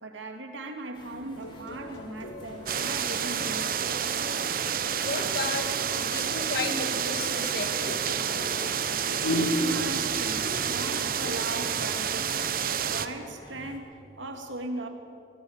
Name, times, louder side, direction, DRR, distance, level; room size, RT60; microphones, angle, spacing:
voice 1, 0.0-4.3 9.6-14.9, right 2 dB, 90° right, 4 dB, 2.8 m, -38 dB
sound 1, 0.9-13.8, equal, 25° left, 3.1 m, -50 dB
sound 2, 1.3-11.4, equal, 80° left, 3.1 m, -44 dB
sound 3, 2.7-13.1, right 8 dB, 50° right, 0.9 m, -29 dB
voice 2, 5.0-8.5 9.1-9.6, left 2 dB, 55° left, 6 dB, 2.1 m, -32 dB
23.5 x 18.5 x 8.4 m, 2.7 s
head